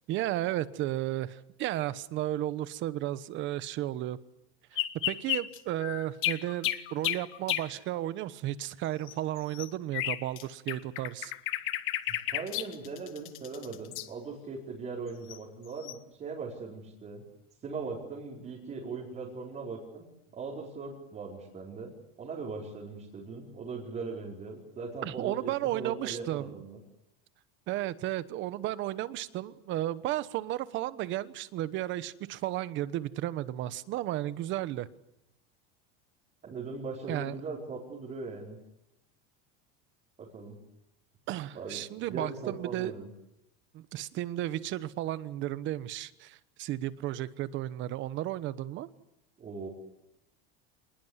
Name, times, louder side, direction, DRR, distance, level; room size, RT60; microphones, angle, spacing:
voice 1, 0.1-4.2 4.7-4.8 5.1-11.3 25.0-26.5 27.7-34.9 37.1-37.3 41.3-42.9 43.7-48.9, right 14 dB, 40° right, 15 dB, 1.1 m, -33 dB
sound 1, 4.8-7.7 9.1-10.4 10.7-14.1 15.3-15.4 15.8-16.0, left 14 dB, 45° left, 1.4 m, -32 dB
voice 2, 12.1-17.2 17.6-20.0 20.3-21.9 22.2-26.8 36.4-38.6 40.2-40.6 41.5-41.8 42.1-43.1 49.4-49.7, right 4 dB, 25° right, -4 dB, 4.8 m, -39 dB
26.5 x 20.5 x 8.1 m, 0.86 s
cardioid pair, 165°, 30 cm